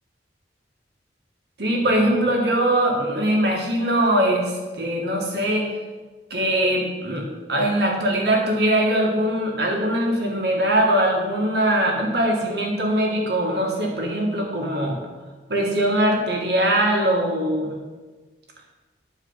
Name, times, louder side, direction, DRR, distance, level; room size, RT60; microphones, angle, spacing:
voice 1, 1.6-5.7 6.3-15.0 15.5-17.8, right 1 dB, 65° right, 0 dB, 1.8 m, -21 dB
9.9 x 4.8 x 5.6 m, 1.3 s
head